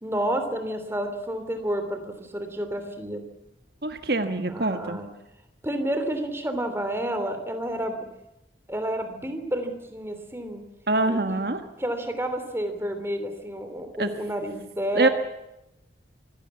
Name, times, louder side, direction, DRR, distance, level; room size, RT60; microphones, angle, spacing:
voice 1, 0.0-3.2 4.5-5.1 5.6-8.1 8.7-10.6 11.1-11.4 11.8-15.1, right 1 dB, 15° right, 7 dB, 3.2 m, -30 dB
voice 2, 3.8-5.0 10.9-11.6 14.0-14.1 14.9-15.1, right 2 dB, 55° right, 8 dB, 1.5 m, -24 dB
25.0 x 17.0 x 8.4 m, 0.89 s
head